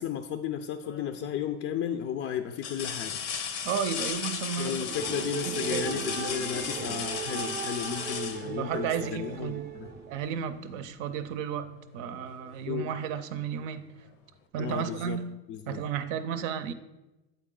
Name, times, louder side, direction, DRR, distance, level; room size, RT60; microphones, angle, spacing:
voice 1, 0.0-3.2 4.6-9.9 12.7-12.9 14.6-15.2 15.5-15.8, left 9 dB, 40° left, 8 dB, 0.4 m, -34 dB
sound 1, 0.8-1.3 1.9-2.0 2.6-9.3 11.0-11.2 11.6-12.7 14.0-14.1, left 7 dB, 85° left, 0.9 m, -36 dB
voice 2, 3.6-4.9 5.4-5.9 8.4-9.7 10.1-11.7 11.9-13.9 14.5-15.4 15.7-16.7, right 8 dB, 75° right, 10 dB, 0.6 m, -33 dB
sound 2, 4.9-10.4, right 7 dB, 30° right, 0.5 m, -37 dB
8.1 x 4.1 x 3.7 m, 1.0 s
supercardioid pair, 100°, 36 cm